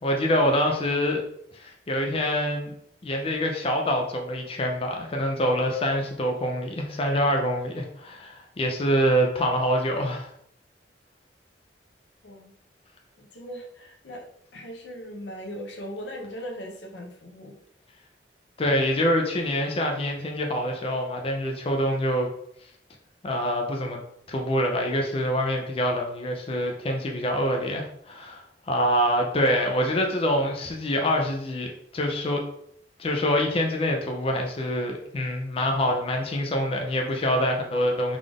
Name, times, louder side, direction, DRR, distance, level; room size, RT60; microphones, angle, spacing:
voice 1, 0.0-1.2 1.5-2.7 3.0-10.3 18.6-22.3 23.2-24.0 24.3-32.4 33.0-38.2, equal, 35° left, 2 dB, 0.4 m, -25 dB
voice 2, 13.2-14.3 14.5-17.5, equal, 80° left, 1 dB, 0.7 m, -39 dB
3.7 x 2.4 x 3.4 m, 0.72 s
head